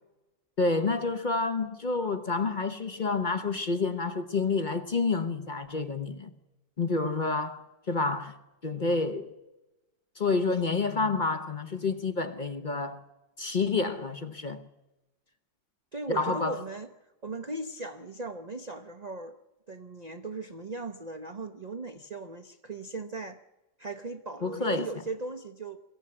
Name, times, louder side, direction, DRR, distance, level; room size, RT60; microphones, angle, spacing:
voice 1, 0.6-6.3 6.8-8.4 8.6-9.3 10.2-13.0 13.4-14.7 16.1-16.6 24.4-24.9, left 3 dB, 40° left, 0.7 m, -29 dB
voice 2, 15.9-16.9 17.2-19.3 19.7-23.4 23.8-25.8, right 2 dB, 40° right, 0.6 m, -38 dB
23.0 x 15.0 x 8.6 m
omnidirectional pair, 1.9 m